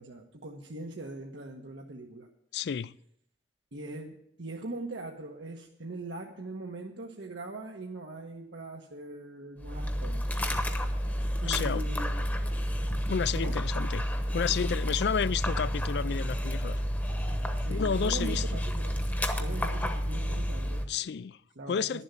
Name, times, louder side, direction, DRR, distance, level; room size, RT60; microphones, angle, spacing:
voice 1, 0.0-2.3 3.7-10.3 11.4-12.6 13.3-13.6 17.5-19.0 19.4-20.9 21.6-22.0, right 2 dB, 85° right, 1.1 m, -41 dB
voice 2, 2.5-2.9 11.4-11.8 13.1-14.1 14.3-16.8 17.7-18.6 20.9-21.4 21.7-22.0, left 7 dB, 65° left, 0.3 m, -31 dB
Dog, 9.6-20.9, equal, 10° left, 0.9 m, -30 dB
11.0 x 7.3 x 8.3 m
head